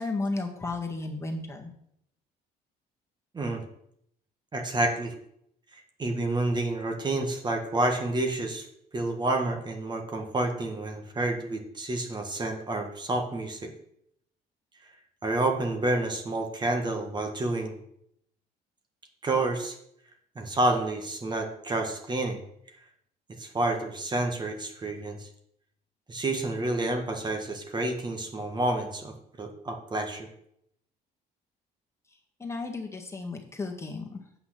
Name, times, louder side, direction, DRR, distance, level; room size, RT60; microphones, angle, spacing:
voice 1, 0.0-1.7 32.4-34.2, left 3 dB, 15° left, 1 dB, 1.9 m, -33 dB
voice 2, 4.5-5.1 6.0-8.7 8.9-13.7 15.2-17.8 19.2-19.8 20.3-22.4 23.4-25.3 26.1-30.3, right 2 dB, 25° right, 3 dB, 1.6 m, -29 dB
8.5 x 5.7 x 5.9 m, 0.72 s
cardioid pair, 110°, 17 cm